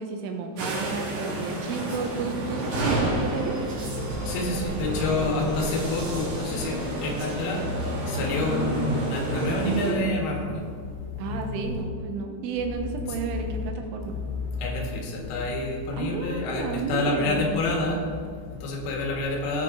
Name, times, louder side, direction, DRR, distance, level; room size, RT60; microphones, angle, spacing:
voice 1, 0.0-3.6 11.2-14.2 16.0-17.6, right 4 dB, 85° right, 4 dB, 3.4 m, -32 dB
Medellin Metro Walla Calm Stereo, 0.6-9.9, right 1 dB, 60° right, 3.7 m, -30 dB
voice 2, 3.8-11.8 13.1-13.2 14.0-19.6, left 2 dB, 85° left, 0 dB, 4.2 m, -28 dB
17.0 x 5.8 x 3.8 m, 2.2 s
omnidirectional pair, 5.6 m